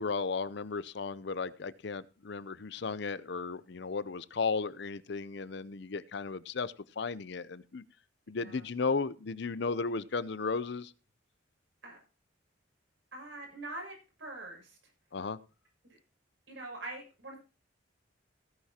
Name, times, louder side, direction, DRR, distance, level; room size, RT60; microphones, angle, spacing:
voice 1, 0.0-7.8 8.3-10.9 15.1-15.4, left 4 dB, 55° left, 17 dB, 0.6 m, -35 dB
voice 2, 13.1-14.8 16.5-17.4, right 2 dB, 70° right, 0 dB, 6.3 m, -44 dB
16.5 x 9.6 x 2.9 m, 0.32 s
head